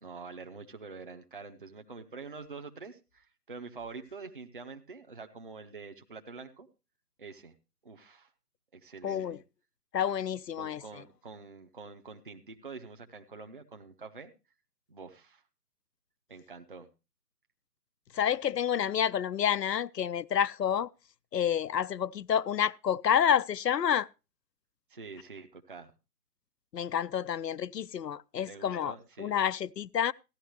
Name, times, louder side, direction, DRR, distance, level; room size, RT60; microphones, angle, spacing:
voice 1, 0.0-6.7 7.2-7.5 7.8-8.3 8.7-9.4 10.6-14.3 14.9-15.4 16.3-16.9 24.9-25.9 28.5-29.4, right 4 dB, 35° right, 0.7 m, -46 dB
voice 2, 9.0-9.4 9.9-10.8 18.1-20.9 21.3-24.1 26.7-30.1, left 9 dB, 80° left, 0.6 m, -29 dB
14.5 x 11.0 x 3.0 m
figure-of-eight pair, 150°, 48 cm